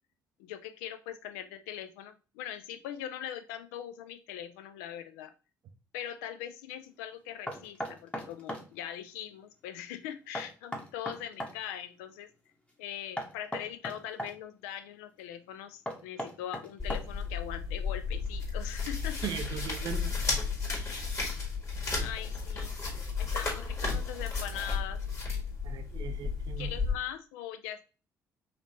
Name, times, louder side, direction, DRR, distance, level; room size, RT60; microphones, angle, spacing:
voice 1, 0.4-5.3 5.9-12.3 12.8-19.3 21.7-25.0 26.6-27.8, left 10 dB, 65° left, 9 dB, 0.4 m, -41 dB
Knock, 7.5-8.7 10.3-11.6 13.2-14.3 15.9-17.3, equal, 10° left, 0.9 m, -37 dB
sound 1, 16.8-26.9, left 4 dB, 30° left, 1.5 m, -33 dB
voice 2, 19.2-20.2 25.6-26.7, right 8 dB, 50° right, 8 dB, 0.5 m, -38 dB
4.0 x 3.0 x 2.9 m, 0.33 s
figure-of-eight pair, 45°, 10 cm